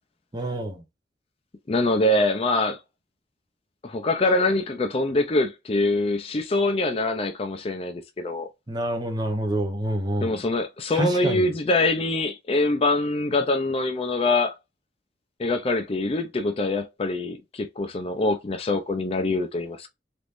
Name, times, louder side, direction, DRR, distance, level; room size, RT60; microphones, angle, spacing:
voice 1, 0.3-0.8 8.7-10.4 10.9-11.5, right 1 dB, 25° right, 0.8 m, -27 dB
voice 2, 1.7-2.8 3.8-8.5 10.2-14.5 15.4-19.9, left 2 dB, 35° left, 0.4 m, -24 dB
3.4 x 3.0 x 2.5 m
head